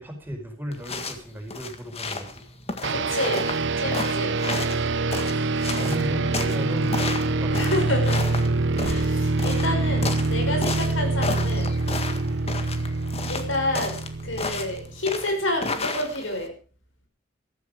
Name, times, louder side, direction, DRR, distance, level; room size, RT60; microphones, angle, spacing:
voice 1, 0.0-2.4 3.7-4.4 5.2-7.7 12.2-12.5, equal, 10° right, 2 dB, 4.9 m, -37 dB
sound 1, 0.7-16.5, left 3 dB, 30° left, 1.8 m, -33 dB
sound 2, 2.8-15.0, right 3 dB, 65° right, 0.8 m, -25 dB
voice 2, 2.9-3.5 3.8-4.3 7.5-8.2 8.8-11.7 13.3-16.5, left 1 dB, 80° left, 4 dB, 5.6 m, -29 dB
15.0 x 14.0 x 5.2 m, 0.39 s
head